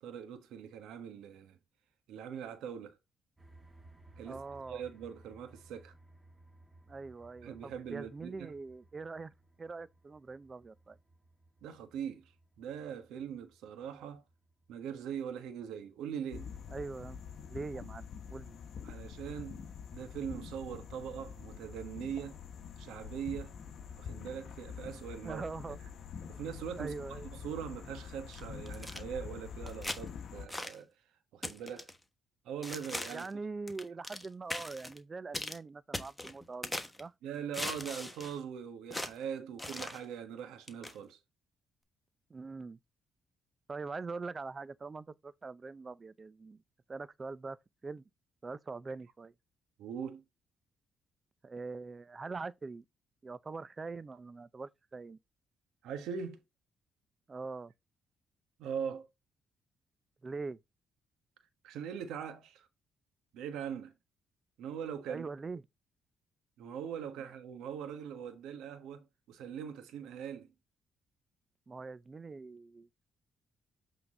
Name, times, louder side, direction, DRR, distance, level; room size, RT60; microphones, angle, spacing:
voice 1, 0.0-1.6 2.1-2.9 4.2-4.4 4.7-5.9 7.4-8.5 11.6-12.3 12.6-14.2 14.7-16.5 18.8-19.6 19.9-22.4 22.8-23.5 24.0-25.4 26.3-26.9 27.3-30.9 31.3-31.9 32.4-33.3 37.2-41.2 49.8-50.2 55.8-56.4 58.6-59.1 61.6-62.7 63.3-63.9 64.6-65.3 66.6-70.5, right 8 dB, 90° right, 1.4 m, -41 dB
sound 1, 3.4-18.9, right 2 dB, 10° right, 2.4 m, -61 dB
voice 2, 4.2-4.8 6.9-9.3 9.6-11.0 16.7-17.2 17.5-18.6 25.2-25.8 26.8-27.3 33.1-37.1 42.3-42.8 43.7-46.6 46.9-47.6 47.8-48.1 48.4-49.3 51.4-52.8 53.2-55.2 57.3-57.7 60.2-60.6 65.1-65.6 71.7-72.9, right 4 dB, 30° right, 0.5 m, -43 dB
sound 2, 16.3-30.5, left 7 dB, 60° left, 1.1 m, -46 dB
sound 3, 28.3-29.0 29.7-30.0 30.5-30.8 31.4-32.0 32.6-33.3 33.7-34.3 34.5-35.0 35.3-35.6 35.9-37.0 37.5-38.4 38.9-39.1 39.6-40.0 40.7-40.9, left 1 dB, 10° left, 1.2 m, -40 dB
7.9 x 3.9 x 3.8 m
cardioid pair, 90°, 0 cm